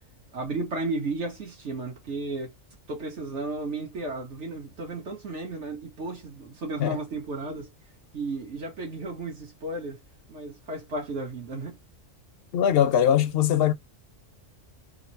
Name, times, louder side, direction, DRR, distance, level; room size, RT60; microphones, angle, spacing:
voice 1, 0.3-2.5 2.9-7.7 8.1-10.0 10.3-11.8, right 2 dB, 65° right, 1.4 m, -34 dB
voice 2, 12.5-13.7, left 10 dB, 60° left, 0.7 m, -21 dB
3.7 x 2.0 x 2.6 m
omnidirectional pair, 1.3 m